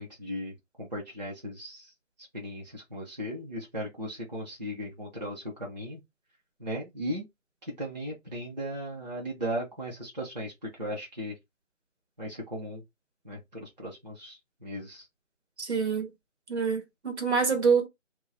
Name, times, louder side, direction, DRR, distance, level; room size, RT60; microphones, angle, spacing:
voice 1, 0.0-1.9 2.2-6.0 6.6-7.3 7.6-11.4 12.2-12.8 13.2-15.1, equal, 35° right, 0.8 m, -37 dB
voice 2, 15.6-16.1 16.5-17.9, right 5 dB, 60° right, 1.1 m, -26 dB
2.3 x 2.1 x 3.6 m
figure-of-eight pair, 180°, 38 cm